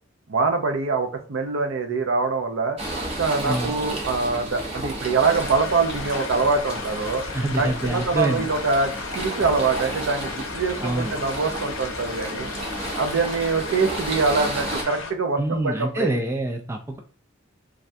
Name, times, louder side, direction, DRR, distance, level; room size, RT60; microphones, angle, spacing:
voice 1, 0.3-2.8 3.2-7.2 7.6-12.5 13.0-16.1, right 4 dB, 70° right, 5 dB, 0.6 m, -24 dB
sound 1, 2.8-14.8, right 1 dB, 30° right, 0.8 m, -33 dB
sound 2, 5.2-15.1, left 4 dB, 80° left, 0.7 m, -35 dB
voice 2, 7.3-8.5 10.8-11.1 15.4-17.0, right 1 dB, 15° right, 3 dB, 0.3 m, -26 dB
3.3 x 2.4 x 2.6 m, 0.40 s
head